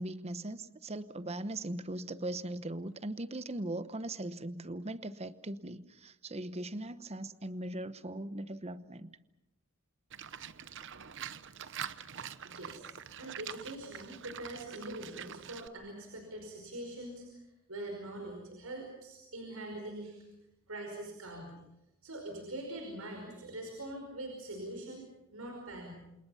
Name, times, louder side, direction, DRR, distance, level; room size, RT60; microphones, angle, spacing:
voice 1, 0.0-9.2, right 1 dB, 30° right, 1.0 m, -39 dB
Livestock farm animals working animals, 10.1-15.7, right 8 dB, 60° right, 0.9 m, -45 dB
voice 2, 12.4-12.9 13.2-17.4 17.7-20.2 20.7-21.6 22.0-25.0 25.3-26.0, right 1 dB, 80° right, 5.2 m, -43 dB
28.5 x 28.0 x 5.7 m
head